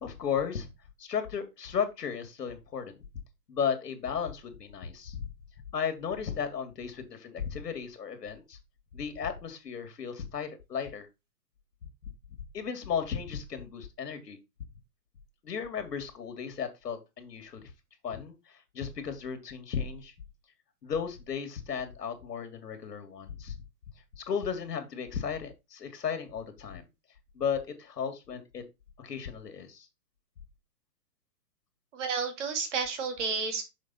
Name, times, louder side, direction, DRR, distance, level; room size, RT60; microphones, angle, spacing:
voice 1, 0.0-0.7 1.0-3.0 3.5-5.2 5.7-8.6 8.9-11.1 12.5-14.4 15.4-17.7 18.0-20.1 20.8-23.5 24.2-26.9 27.3-28.6 29.0-29.9, left 7 dB, 90° left, 2.1 m, -35 dB
voice 2, 31.9-33.6, right 5 dB, 45° right, 2.1 m, -31 dB
6.5 x 4.9 x 4.1 m
hypercardioid pair, 165°, 47 cm